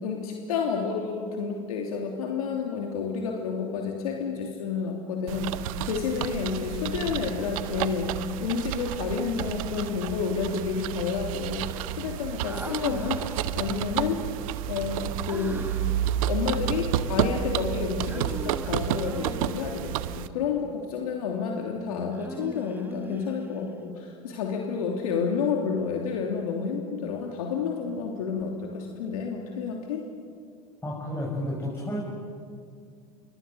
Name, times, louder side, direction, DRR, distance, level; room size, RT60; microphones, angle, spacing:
voice 1, 0.0-14.3 14.7-15.7 16.3-30.1, left 5 dB, 80° left, 1 dB, 3.1 m, -30 dB
sound 1, 5.3-20.3, right 12 dB, 70° right, 1.1 m, -31 dB
Human voice, 9.1-10.0 12.4-13.8 15.3-16.1 18.1-19.9 22.1-23.7, right 2 dB, 10° right, 1.5 m, -42 dB
voice 2, 30.8-32.0, left 1 dB, 10° left, -4 dB, 7.4 m, -31 dB
28.5 x 24.0 x 6.9 m, 2.2 s
hypercardioid pair, 95°, 18 cm